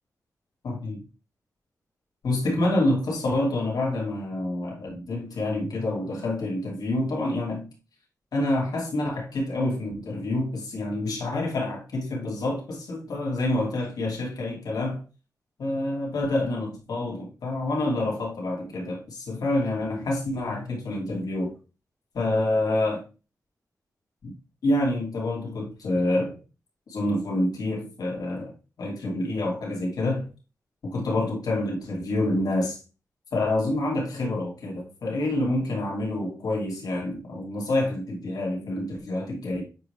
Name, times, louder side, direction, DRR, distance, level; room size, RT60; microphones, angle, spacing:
voice 1, 0.6-1.0 2.2-7.7 8.3-15.0 15.6-21.5 22.1-23.0 24.2-24.3 24.6-26.4 26.9-30.3 30.8-32.8 33.3-39.6, left 1 dB, 75° left, 2.5 m, -27 dB
7.9 x 4.9 x 3.3 m
cardioid pair, 85°, 6 cm